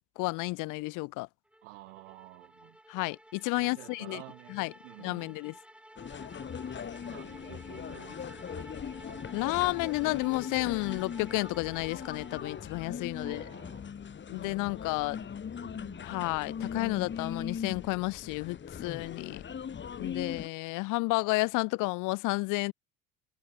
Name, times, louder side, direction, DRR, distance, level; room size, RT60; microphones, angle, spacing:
voice 1, 0.2-1.3 2.9-4.2 4.5-4.7 5.0-5.5 9.3-13.4 14.3-15.2 16.0-19.4 20.0-22.7, left 24 dB, 55° left, 0.5 m, -31 dB
sound 1, 1.5-12.9, right 1 dB, 5° right, 7.7 m, -52 dB
voice 2, 1.6-2.8 3.5-5.4 7.1-8.4 13.2-14.0 15.0-15.3 15.6-16.2, right 21 dB, 75° right, 1.3 m, -51 dB
sound 2, 6.0-20.5, left 7 dB, 30° left, 1.7 m, -40 dB
hypercardioid pair, 75°, 38 cm